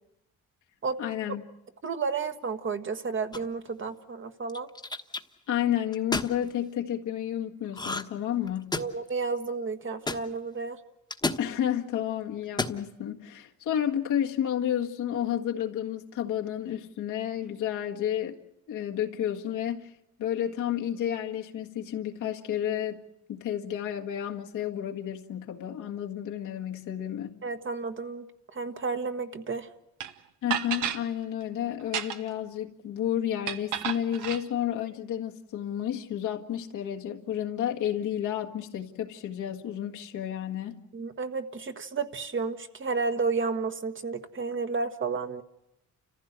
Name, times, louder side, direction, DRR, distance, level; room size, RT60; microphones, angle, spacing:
voice 1, 1.0-1.4 5.5-8.8 11.4-18.4 18.7-19.9 20.2-23.0 23.3-27.4 30.4-40.8, left 10 dB, 80° left, 1.8 m, -31 dB
voice 2, 1.8-4.7 8.8-10.8 27.4-28.2 28.5-29.7 40.9-45.4, right 4 dB, 40° right, 1.5 m, -31 dB
sound 1, 3.3-3.7 4.5-5.2 5.9-6.3 7.7-8.2 8.5-9.1 10.1-10.2 11.1-11.4 12.4-12.8, left 3 dB, 15° left, 1.2 m, -31 dB
sound 2, 30.0-30.1 30.5-31.0 31.8-32.4 33.5-34.4, right 9 dB, 90° right, 1.2 m, -31 dB
29.5 x 15.0 x 8.0 m
cardioid pair, 90°, 30 cm